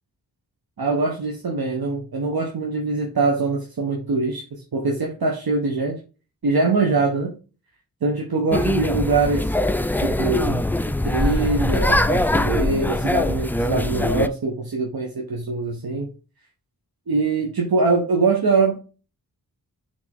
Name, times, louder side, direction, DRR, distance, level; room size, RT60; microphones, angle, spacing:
voice 1, 0.8-6.0 6.4-7.3 8.0-9.5 10.0-10.6 11.0-16.1 17.1-18.8, right 3 dB, 70° right, 0 dB, 1.5 m, -23 dB
sound 1, 8.5-14.3, left 1 dB, 5° left, 0.4 m, -22 dB
6.3 x 4.2 x 3.7 m, 0.34 s
cardioid pair, 45°, 38 cm